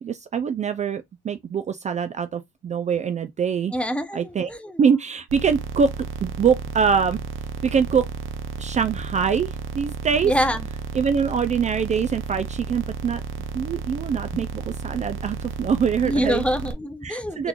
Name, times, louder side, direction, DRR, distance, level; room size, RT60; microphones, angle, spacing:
voice 1, 0.0-3.7 4.1-4.5 4.8-5.9 6.2-7.2 7.6-8.1 8.6-10.3 10.9-13.2 13.5-16.4 17.0-17.5, right 6 dB, 35° right, 0.4 m, -24 dB
voice 2, 3.7-4.8 10.2-10.6 14.3-14.4 16.0-17.5, equal, 5° left, 0.7 m, -25 dB
sound 1, 5.3-16.7, right 5 dB, 85° right, 0.7 m, -33 dB
3.7 x 3.0 x 2.3 m
cardioid pair, 90°, 20 cm